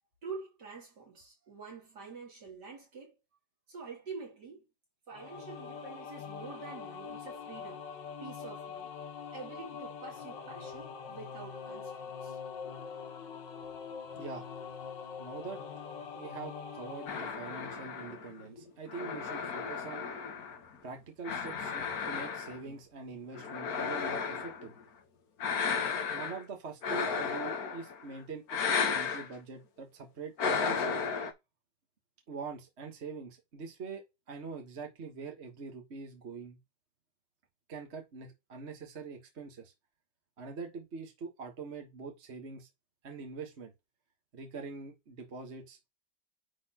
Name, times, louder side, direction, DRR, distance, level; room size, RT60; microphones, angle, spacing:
voice 1, 0.2-3.1 3.7-4.7 5.1-7.9 8.2-8.9 9.3-12.4, right 4 dB, 65° right, 3.6 m, -46 dB
sound 1, 5.1-17.3, left 6 dB, 80° left, 1.7 m, -43 dB
voice 2, 14.1-14.8 15.2-15.6 16.2-20.0 20.8-24.7 26.1-31.1 32.3-36.6 37.7-39.7 40.4-42.7 43.0-43.7 44.3-45.8, right 4 dB, 40° right, 1.5 m, -44 dB
sound 2, 17.1-20.8 21.2-22.7 23.3-24.7 25.4-26.4 26.8-28.0 28.5-29.3 30.4-31.3, left 6 dB, 60° left, 1.5 m, -34 dB
9.9 x 4.1 x 2.9 m
omnidirectional pair, 1.9 m